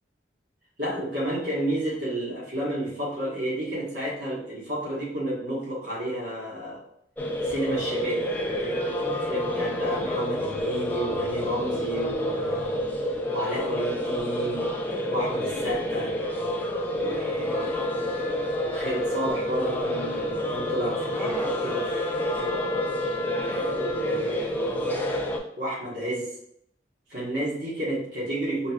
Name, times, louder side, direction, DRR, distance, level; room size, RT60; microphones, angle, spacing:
voice 1, 0.8-6.8 7.4-12.8 13.3-14.7 15.1-16.2 16.9-22.9 23.4-26.3 27.1-28.7, right 1 dB, 65° right, -6 dB, 1.6 m, -32 dB
sound 1, 7.2-25.4, left 1 dB, 10° left, 0.4 m, -28 dB
Trumpet, 17.5-24.5, left 3 dB, 40° right, 0.9 m, -40 dB
5.2 x 2.8 x 2.4 m, 0.71 s
head